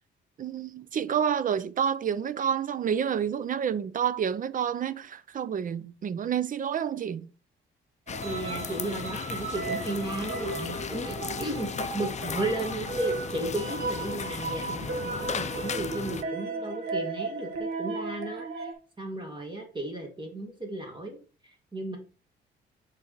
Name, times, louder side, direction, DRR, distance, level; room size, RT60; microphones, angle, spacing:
voice 1, 0.4-7.3, right 8 dB, 45° right, 0.5 m, -29 dB
sound 1, 8.1-16.2, left 7 dB, 35° left, 0.5 m, -36 dB
sound 2, 8.1-18.7, right 3 dB, 90° right, 1.1 m, -35 dB
voice 2, 8.2-18.7 19.0-21.2 21.7-22.0, right 2 dB, 25° right, 1.7 m, -34 dB
9.3 x 3.3 x 4.0 m
cardioid pair, 90°, 20 cm